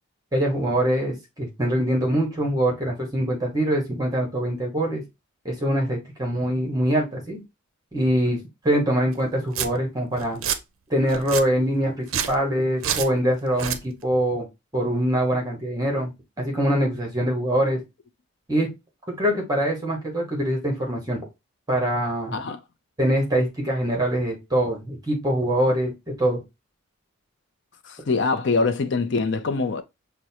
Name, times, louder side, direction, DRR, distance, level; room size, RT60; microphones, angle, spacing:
voice 1, 0.3-5.0 5.4-7.4 7.9-10.4 10.9-14.5 14.7-16.1 16.4-17.8 18.5-18.7 19.1-21.2 21.7-22.4 23.0-25.9 26.2-26.4, right 1 dB, 15° right, 1.1 m, -24 dB
Domestic sounds home sounds, 9.1-9.2 9.5-9.7 10.2-10.6 11.1-11.4 12.0-12.4 12.8-13.1 13.5-13.8, right 9 dB, 75° right, 0.5 m, -27 dB
voice 2, 27.8-29.8, left 4 dB, 55° left, 0.5 m, -24 dB
6.2 x 2.2 x 2.7 m
head